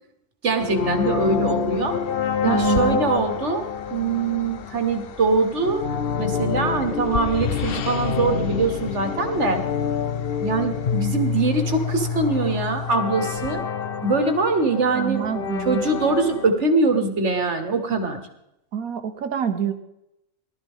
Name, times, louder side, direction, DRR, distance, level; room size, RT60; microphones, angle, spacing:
voice 1, 0.4-2.0 2.4-5.9 6.2-9.6 10.4-13.6 14.0-15.3 15.6-18.2, right 3 dB, 55° right, 6 dB, 1.8 m, -23 dB
sound 1, 0.6-16.5, left 7 dB, 55° left, 0.8 m, -27 dB
voice 2, 2.4-3.0 14.9-15.8 18.7-19.7, right 8 dB, 80° right, 9 dB, 1.5 m, -26 dB
18.0 x 12.5 x 3.6 m, 0.83 s
omnidirectional pair, 1.5 m